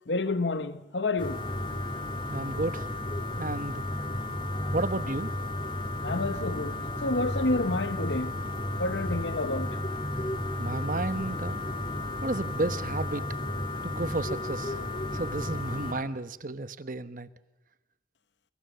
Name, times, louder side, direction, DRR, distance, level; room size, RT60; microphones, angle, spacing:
voice 1, 0.1-1.5 6.0-8.4 8.8-9.8, left 2 dB, 80° left, 1.2 m, -29 dB
sound 1, 1.2-15.9, left 1 dB, 30° left, 2.9 m, -33 dB
voice 2, 2.3-2.9 3.4-3.8 4.7-5.3 10.6-11.6 12.2-13.2 13.8-14.8 15.1-17.3, right 2 dB, 50° right, 1.1 m, -32 dB
29.0 x 24.5 x 7.0 m
head